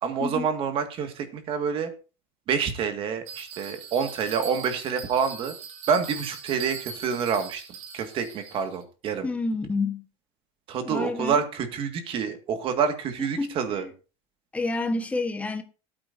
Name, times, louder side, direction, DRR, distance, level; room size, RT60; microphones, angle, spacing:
voice 1, 0.0-1.9 2.5-5.5 5.9-7.6 7.9-9.3 10.7-13.9, right 6 dB, 40° right, 1.8 m, -27 dB
Bell, 3.3-8.8, right 7 dB, 85° right, 3.5 m, -40 dB
voice 2, 9.2-10.0 10.8-11.4 13.4-13.9 14.5-15.6, left 3 dB, 10° left, 1.2 m, -29 dB
17.5 x 9.0 x 2.6 m
cardioid pair, 155°, 15 cm